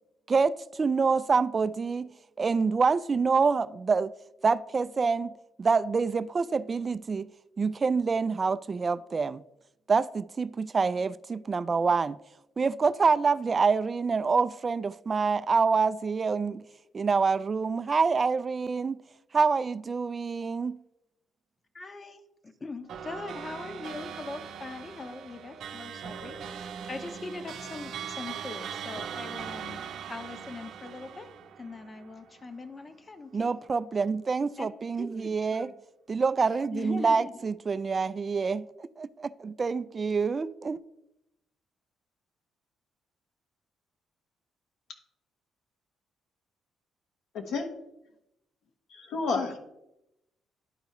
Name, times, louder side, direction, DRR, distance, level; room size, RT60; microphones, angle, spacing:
voice 1, 0.3-2.1 2.4-4.1 4.4-5.3 5.6-7.3 7.6-9.4 9.9-12.2 12.6-16.6 16.9-19.0 19.3-20.8 33.3-35.7 36.1-38.7 39.0-40.8, right 5 dB, 35° right, 0.3 m, -26 dB
voice 2, 21.7-29.8 30.1-31.3 31.6-33.5 34.6-34.7 35.0-35.7 36.7-37.3, left 3 dB, 30° left, 0.8 m, -41 dB
sound 1, 22.9-32.5, right 7 dB, 70° right, 0.7 m, -40 dB
voice 3, 47.3-47.7 48.9-49.6, left 4 dB, 75° left, 1.2 m, -30 dB
11.5 x 4.7 x 3.0 m
cardioid pair, 90°, 0 cm